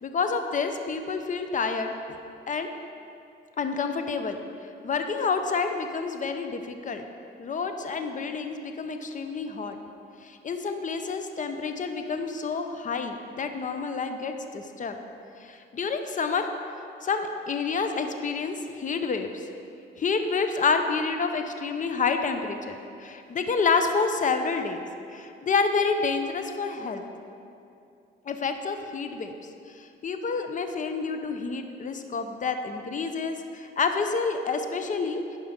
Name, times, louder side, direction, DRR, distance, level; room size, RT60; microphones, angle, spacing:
voice 1, 0.0-2.2 2.5-2.7 3.6-4.4 4.8-7.1 7.4-9.8 10.2-15.0 15.4-16.5 17.0-19.5 20.0-24.8 25.1-27.0 28.3-29.3 29.7-35.2, left 4 dB, 40° left, 6 dB, 0.8 m, -28 dB
11.0 x 5.3 x 5.2 m, 2.6 s
cardioid pair, 90°, 20 cm